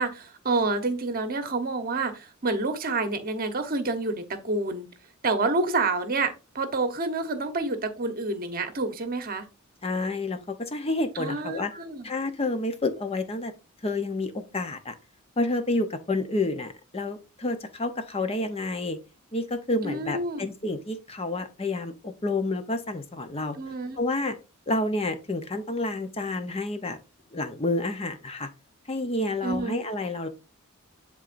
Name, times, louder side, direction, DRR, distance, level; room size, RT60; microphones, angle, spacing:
voice 1, 0.0-4.9 5.2-9.5 11.1-12.1 19.8-20.5 23.5-24.0 29.4-29.8, right 3 dB, 45° right, 1.0 m, -28 dB
voice 2, 9.8-11.7 12.0-13.5 13.8-14.9 15.4-19.0 19.3-23.6 24.0-24.4 24.7-27.0 27.3-28.5 28.9-30.3, left 2 dB, 30° left, 0.8 m, -29 dB
10.5 x 3.8 x 2.5 m
head